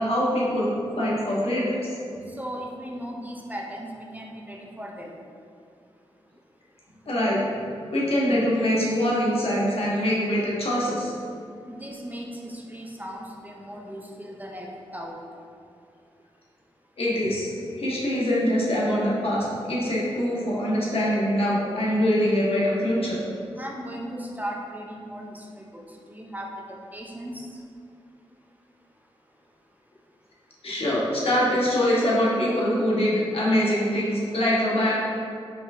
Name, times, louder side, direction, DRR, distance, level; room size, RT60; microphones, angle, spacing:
voice 1, 0.0-2.0 7.1-7.4 7.9-11.1 17.0-23.2 30.6-34.9, equal, 60° left, -6 dB, 1.3 m, -24 dB
voice 2, 2.4-5.2 11.7-15.1 23.6-25.7 26.1-27.4, equal, 15° right, -1 dB, 0.6 m, -37 dB
4.7 x 3.8 x 2.6 m, 2.4 s
cardioid pair, 50°, 11 cm